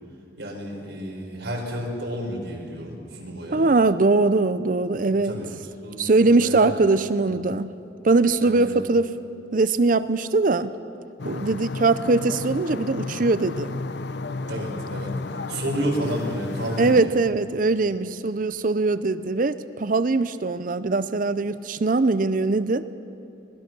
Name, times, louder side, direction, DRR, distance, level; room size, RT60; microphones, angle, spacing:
voice 1, 0.4-3.6 5.1-5.5 5.8-6.7 7.2-7.3 8.4-8.8 14.5-15.1 15.5-17.1, equal, 70° right, -2 dB, 5.0 m, -31 dB
voice 2, 3.5-5.4 6.0-7.8 8.0-9.1 9.5-10.7 11.2-13.7 16.8-22.8, right 3 dB, 45° right, 13 dB, 0.6 m, -21 dB
sound 1, 11.2-17.0, left 3 dB, 65° left, 0.6 m, -32 dB
25.0 x 19.0 x 6.2 m, 2.6 s
head